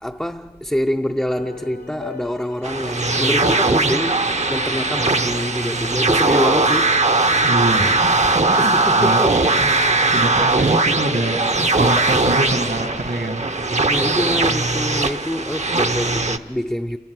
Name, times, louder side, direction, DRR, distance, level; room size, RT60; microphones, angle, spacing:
voice 1, 0.0-7.0 8.6-9.7 13.9-17.0, equal, 5° left, 0.5 m, -25 dB
sound 1, 1.3-7.4, left 4 dB, 65° left, 1.5 m, -37 dB
sound 2, 2.6-16.4, right 3 dB, 45° right, 0.7 m, -19 dB
voice 2, 7.4-9.4 10.1-11.4 11.7-13.5, right 1 dB, 70° right, 2.0 m, -24 dB
28.5 x 16.5 x 6.4 m
wide cardioid pair, 45°, 17 cm